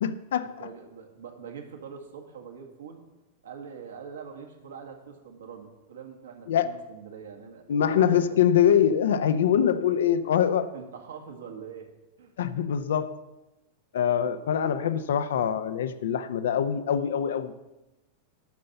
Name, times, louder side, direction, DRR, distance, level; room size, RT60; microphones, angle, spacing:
voice 1, 0.0-0.7 6.5-6.7 7.7-10.7 12.4-13.3 13.9-17.5, left 9 dB, 60° left, 0.7 m, -24 dB
voice 2, 0.6-3.0 3.4-8.4 9.1-9.2 10.7-11.9 12.2-12.3, right 6 dB, 65° right, 1.9 m, -43 dB
11.5 x 6.5 x 6.9 m
figure-of-eight pair, 90°, 0 cm